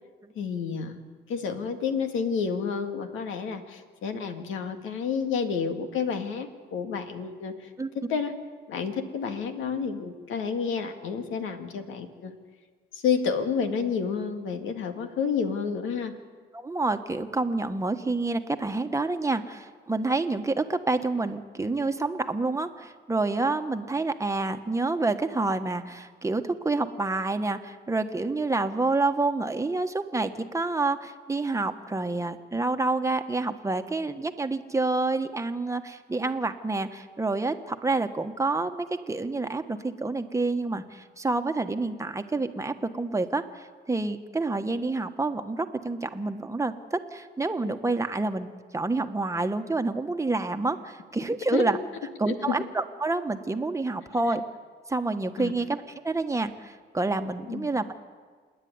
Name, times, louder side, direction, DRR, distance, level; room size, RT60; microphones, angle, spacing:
voice 1, 0.4-1.0 1.3-7.7 8.0-8.3 8.7-12.4 12.9-16.2 51.5-51.7 52.3-52.7 55.4-55.5 57.5-57.7, left 6 dB, 85° left, 6 dB, 2.0 m, -30 dB
voice 2, 16.5-51.8 52.2-54.4 54.9-57.8, right 3 dB, 15° right, 7 dB, 1.3 m, -28 dB
27.0 x 10.0 x 9.6 m, 1.6 s
cardioid pair, 90°, 20 cm